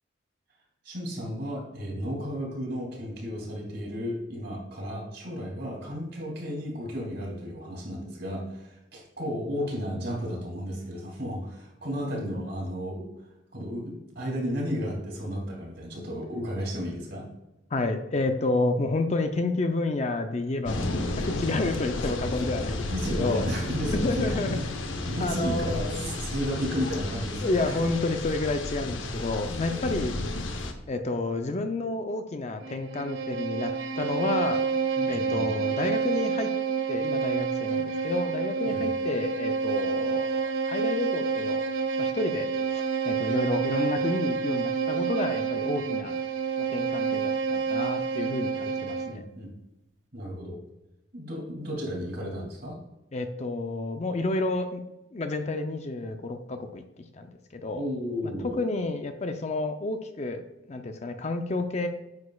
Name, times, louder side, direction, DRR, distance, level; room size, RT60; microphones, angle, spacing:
voice 1, 0.8-13.1 13.5-17.3 22.9-24.6 25.1-27.8 29.7-30.0 35.0-35.5 38.6-38.9 48.4-49.5 50.1-50.6 51.1-52.8 57.7-58.6, equal, 55° right, -2 dB, 2.7 m, -33 dB
voice 2, 17.7-22.9 23.2-23.5 23.9-24.6 25.2-26.1 27.4-30.2 30.5-30.6 30.9-34.6 35.1-36.5 36.9-41.6 42.0-46.1 46.6-49.3 53.1-54.8 55.1-56.8 57.1-57.3 57.5-57.9 58.5-60.4 60.7-61.9, left 2 dB, 35° left, 7 dB, 0.5 m, -30 dB
sound 1, 20.7-30.7, left 2 dB, 75° left, 0.8 m, -32 dB
Bowed string instrument, 32.6-49.2, right 5 dB, 75° right, 0.6 m, -28 dB
9.5 x 6.3 x 2.3 m, 0.96 s
head